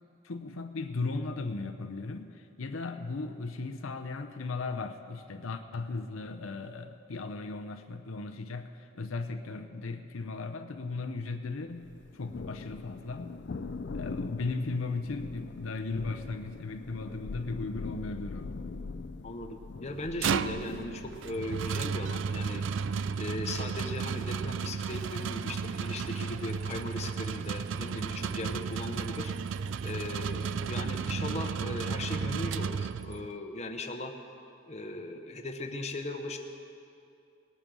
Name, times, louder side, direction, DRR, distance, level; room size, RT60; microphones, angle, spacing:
voice 1, 0.2-13.4 13.9-18.5, left 3 dB, 85° left, 7 dB, 0.7 m, -36 dB
Thunder, 11.8-25.0, left 3 dB, 55° left, 0.4 m, -43 dB
voice 2, 19.2-22.6 23.2-29.3 29.8-34.1 34.7-36.4, left 2 dB, 35° left, 4 dB, 0.9 m, -38 dB
sound 1, 19.9-33.4, right 6 dB, 65° right, 0.3 m, -33 dB
19.5 x 8.9 x 6.2 m, 2.5 s
head